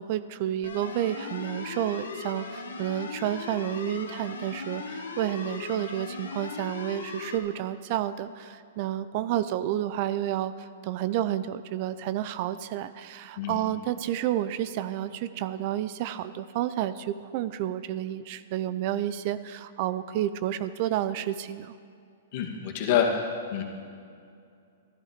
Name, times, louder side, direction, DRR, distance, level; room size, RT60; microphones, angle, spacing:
voice 1, 0.0-21.7, right 12 dB, 45° right, 13 dB, 0.5 m, -30 dB
sound 1, 0.6-7.4, left 4 dB, 85° left, 1.5 m, -38 dB
voice 2, 22.3-23.6, left 7 dB, 50° left, 1 dB, 2.0 m, -27 dB
13.5 x 11.5 x 5.1 m, 2.4 s
hypercardioid pair, 125°, 0 cm